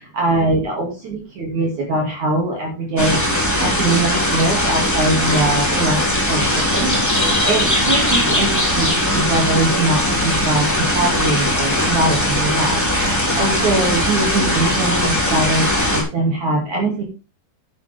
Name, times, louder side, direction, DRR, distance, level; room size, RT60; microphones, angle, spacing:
voice 1, 0.0-17.0, right 2 dB, 50° right, -1 dB, 3.7 m, -22 dB
sound 1, 3.0-16.0, left 1 dB, 5° left, 3.6 m, -19 dB
11.0 x 10.5 x 3.6 m, 0.31 s
omnidirectional pair, 4.6 m